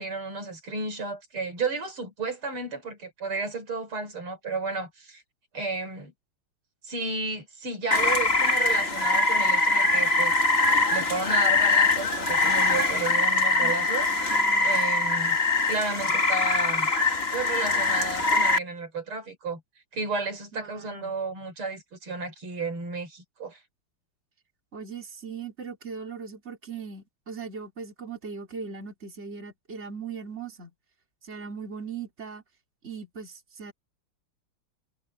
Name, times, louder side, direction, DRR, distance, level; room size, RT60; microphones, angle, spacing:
voice 1, 0.0-5.2 5.5-6.1 6.8-10.4 10.9-15.4 15.7-16.9 17.3-19.6 19.9-23.6, right 3 dB, 90° right, 5.8 m, -33 dB
Rain, 7.9-18.6, left 3 dB, 30° left, 2.4 m, -23 dB
voice 2, 14.0-14.8 20.5-21.1 24.7-30.7 31.2-32.4 32.8-33.7, right 5 dB, 30° right, 3.8 m, -39 dB
omnidirectional pair, 2.3 m